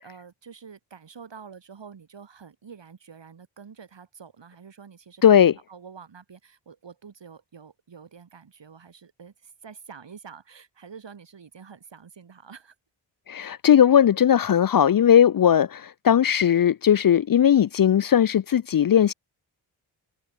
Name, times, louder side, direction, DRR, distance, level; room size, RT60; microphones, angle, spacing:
voice 1, 0.0-12.7, right 6 dB, 60° right, 4.9 m, -47 dB
voice 2, 5.2-5.5 13.3-19.1, left 9 dB, 45° left, 0.6 m, -18 dB
cardioid pair, 50°, 49 cm